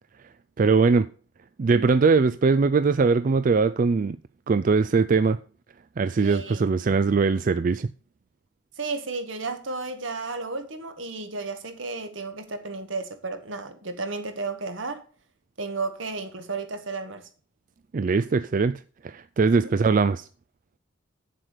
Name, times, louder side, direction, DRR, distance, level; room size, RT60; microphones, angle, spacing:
voice 1, 0.6-1.1 1.6-4.2 4.5-5.4 6.0-7.9 17.9-20.3, right 4 dB, 45° right, 0.4 m, -21 dB
voice 2, 6.2-6.7 8.8-15.0 15.6-17.3 19.5-19.7, right 3 dB, 75° right, 1.7 m, -33 dB
8.0 x 7.6 x 6.7 m
head